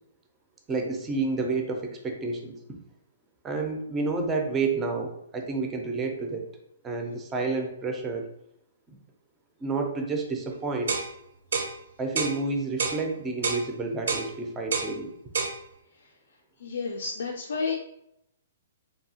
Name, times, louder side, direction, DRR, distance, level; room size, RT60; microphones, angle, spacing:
voice 1, 0.7-2.5 3.4-6.5 6.8-8.3 9.6-10.9 12.0-15.1, right 3 dB, 15° right, 3 dB, 0.4 m, -30 dB
sound 1, 10.9-11.1 11.5-11.7 12.2-12.4 12.8-13.0 13.4-13.6 14.1-14.3 14.7-14.9 15.3-15.6, right 5 dB, 80° right, 0.5 m, -28 dB
voice 2, 16.6-17.7, left 4 dB, 80° left, 0 dB, 0.3 m, -31 dB
2.7 x 2.7 x 2.7 m, 0.78 s
hypercardioid pair, 165°, 0 cm